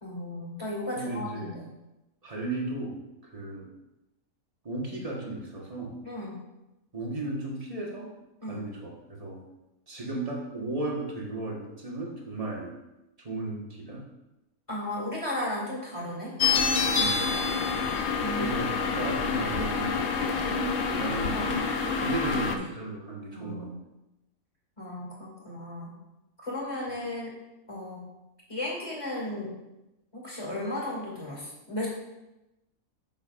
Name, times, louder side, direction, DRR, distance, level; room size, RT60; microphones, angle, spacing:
voice 1, 0.0-1.7 6.0-6.4 8.4-8.6 14.7-16.3 18.2-18.6 21.3-21.5 22.3-22.7 23.3-23.8 24.8-26.0 26.4-27.3 27.7-28.0 28.5-29.5 30.1-31.9, left 1 dB, 20° left, -4 dB, 2.4 m, -35 dB
voice 2, 1.0-1.6 2.2-3.0 3.3-3.7 4.6-6.0 6.9-8.1 8.4-9.4 9.9-12.7 13.2-14.0 16.9-17.3 18.3-21.6 22.0-23.7, right 2 dB, 25° right, -2 dB, 1.4 m, -35 dB
sound 1, 16.4-22.6, left 5 dB, 65° left, 1.0 m, -27 dB
9.2 x 6.3 x 2.5 m, 0.95 s
omnidirectional pair, 1.5 m